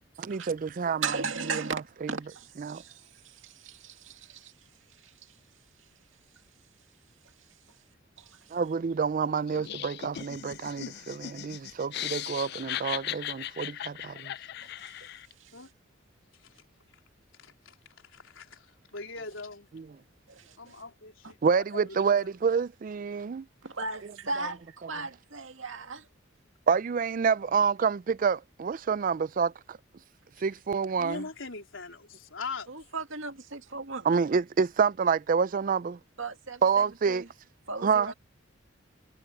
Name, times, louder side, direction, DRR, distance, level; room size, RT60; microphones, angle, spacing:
voice 1, 0.2-1.2 1.5-2.1 2.6-2.8 8.5-14.3 19.7-19.9 21.4-23.5 26.7-29.8 30.4-31.2 34.0-36.0 36.6-37.2 37.8-38.1, right 6 dB, 45° right, 0.4 m, -28 dB
voice 2, 1.0-4.5 5.0-5.3 7.7-7.8 8.2-8.5 14.6-15.1 15.4-15.6 20.3-20.8 21.2-21.3 23.6-26.1 32.7-34.1 36.2-37.3 37.7-38.1, right 4 dB, 80° right, 2.3 m, -37 dB
Laughter, 9.5-15.3, left 12 dB, 55° left, 0.4 m, -38 dB
voice 3, 17.4-17.8 18.1-19.7 20.6-21.4 21.7-21.8 22.2-22.3 31.0-32.7, left 4 dB, 80° left, 4.0 m, -41 dB
head